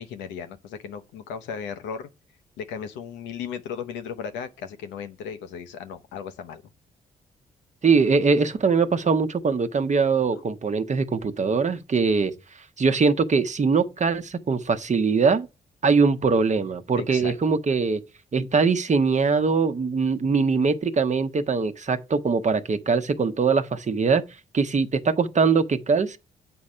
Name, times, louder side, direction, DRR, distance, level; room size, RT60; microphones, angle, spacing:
voice 1, 0.0-2.1 2.6-6.6 17.0-17.3, left 7 dB, 85° left, 0.7 m, -36 dB
voice 2, 7.8-12.3 12.8-15.5 15.8-18.0 18.3-24.2 24.5-26.2, right 4 dB, 40° right, 0.9 m, -22 dB
7.8 x 4.3 x 5.0 m
supercardioid pair, 50°, 18 cm